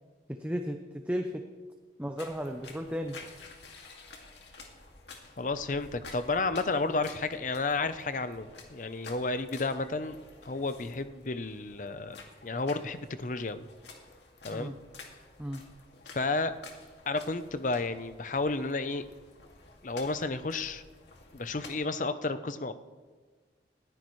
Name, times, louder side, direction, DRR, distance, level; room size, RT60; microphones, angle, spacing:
voice 1, 0.3-0.8 1.1-1.4 2.0-3.2 14.5-14.8 15.4-15.7, equal, 10° right, 4 dB, 0.6 m, -34 dB
sound 1, 2.2-21.7, left 3 dB, 70° left, 2.1 m, -51 dB
voice 2, 5.4-10.2 10.4-12.2 12.4-13.6 14.4-14.7 16.1-16.5 17.1-19.1 19.8-20.8 21.3-22.7, left 3 dB, 45° left, 11 dB, 0.6 m, -32 dB
20.5 x 14.5 x 3.1 m, 1.4 s
head